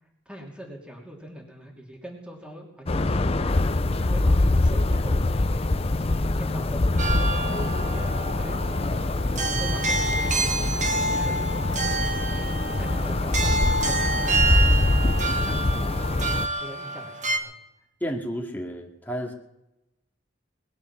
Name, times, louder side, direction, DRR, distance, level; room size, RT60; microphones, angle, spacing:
voice 1, 0.3-3.6 4.0-5.5 6.4-7.1 7.4-7.5 7.9-8.6 9.2-10.8 11.1-11.5 12.7-15.0 15.3-15.9 16.6-17.5, equal, 5° right, 0 dB, 2.8 m, -42 dB
sound 1, 2.9-16.5, left 2 dB, 30° left, 0.6 m, -24 dB
sound 2, 7.0-17.4, right 2 dB, 40° right, 1.6 m, -28 dB
voice 2, 18.0-19.3, equal, 10° left, 0 dB, 2.3 m, -32 dB
21.0 x 10.5 x 6.0 m, 0.89 s
head